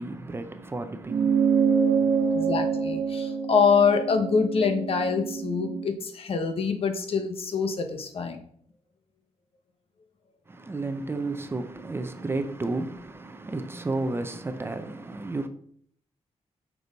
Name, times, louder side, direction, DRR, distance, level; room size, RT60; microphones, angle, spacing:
voice 1, 0.0-2.5 10.5-15.5, right 2 dB, 20° right, 0.6 m, -33 dB
sound 1, 1.1-5.9, right 6 dB, 50° right, 1.2 m, -26 dB
voice 2, 2.3-8.4, left 5 dB, 55° left, 1.2 m, -25 dB
8.7 x 6.2 x 4.0 m
wide cardioid pair, 160°, 12 cm